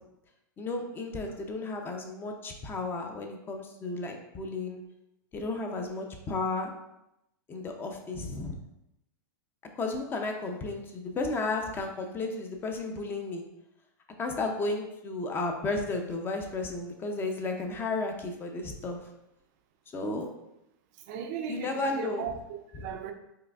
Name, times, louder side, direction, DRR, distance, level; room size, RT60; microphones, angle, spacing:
voice 1, 0.6-4.8 5.3-6.7 7.5-8.6 9.8-13.4 14.2-19.0 19.9-20.3 21.5-22.3 22.7-22.9, left 3 dB, 20° left, 4 dB, 0.4 m, -33 dB
voice 2, 21.1-23.1, right 7 dB, 45° right, 6 dB, 0.4 m, -37 dB
4.6 x 2.5 x 2.3 m, 0.86 s
hypercardioid pair, 125°, 11 cm